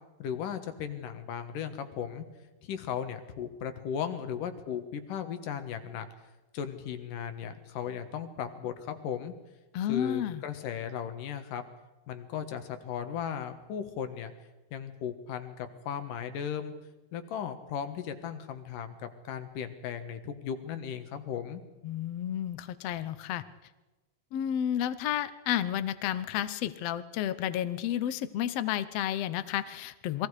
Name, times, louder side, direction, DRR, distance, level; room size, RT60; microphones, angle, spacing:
voice 1, 0.2-2.2 2.6-6.1 6.5-9.3 9.9-11.6 12.1-14.3 14.7-16.7 17.1-21.6, left 8 dB, 85° left, 8 dB, 3.2 m, -36 dB
voice 2, 9.7-10.4 21.8-23.4 24.3-30.3, left 11 dB, 65° left, 13 dB, 1.8 m, -31 dB
29.0 x 22.0 x 4.9 m, 1.1 s
omnidirectional pair, 3.7 m